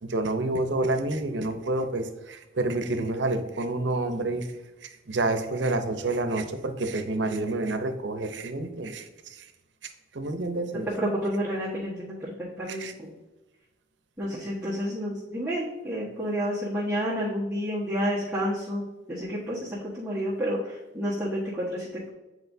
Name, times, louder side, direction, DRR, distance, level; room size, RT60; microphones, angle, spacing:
voice 1, 0.0-4.5 4.8-9.4 10.1-10.9 12.7-12.9, right 2 dB, 85° right, 8 dB, 0.7 m, -29 dB
voice 2, 10.9-13.1 14.2-22.1, equal, 10° right, -10 dB, 1.3 m, -30 dB
8.0 x 4.8 x 2.7 m, 1.1 s
head